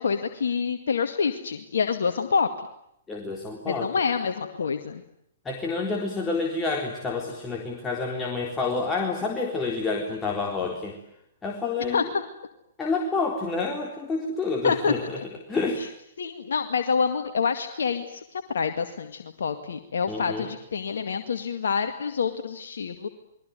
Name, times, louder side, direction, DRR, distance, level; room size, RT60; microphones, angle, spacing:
voice 1, 0.0-2.5 3.7-5.0 11.9-12.0 14.6-15.2 15.8-15.9 16.2-23.1, left 5 dB, 70° left, 7 dB, 2.0 m, -27 dB
voice 2, 3.1-3.9 5.4-11.0 11.4-12.1 12.8-15.2 15.5-15.8 20.1-20.5, left 3 dB, 15° left, 0 dB, 3.8 m, -28 dB
29.5 x 22.0 x 9.1 m, 0.76 s
figure-of-eight pair, 120°, 0 cm